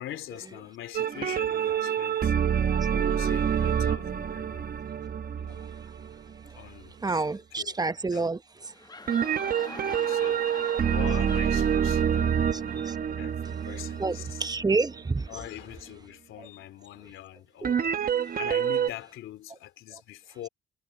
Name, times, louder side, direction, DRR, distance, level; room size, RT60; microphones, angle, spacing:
voice 1, 0.0-2.4 2.9-4.8 5.4-5.7 6.5-7.8 8.1-8.3 9.7-10.5 10.8-12.7 13.1-14.5 15.3-20.5, left 13 dB, 80° left, 3.4 m, -43 dB
sound 1, 0.9-6.6 9.1-15.0 17.6-18.9, right 8 dB, 45° right, 1.0 m, -27 dB
voice 2, 7.0-8.4 14.0-15.3 17.6-17.7, right 3 dB, 20° right, 1.0 m, -28 dB
sound 2, 8.6-14.2, left 3 dB, 20° left, 1.0 m, -45 dB
cardioid pair, 90°, 20 cm